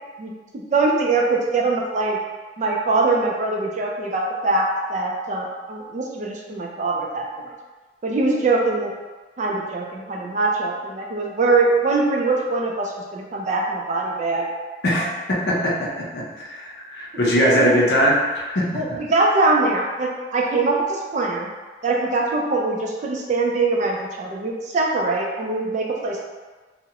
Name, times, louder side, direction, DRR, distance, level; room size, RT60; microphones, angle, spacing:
voice 1, 0.2-2.2 2.6-7.5 8.0-8.9 9.4-14.5 17.5-17.7 18.7-21.5 21.8-26.2, right 3 dB, 40° right, -1 dB, 0.3 m, -22 dB
voice 2, 14.8-18.2 18.5-18.8, equal, 65° left, -4 dB, 0.6 m, -21 dB
2.3 x 2.0 x 2.8 m, 1.3 s
head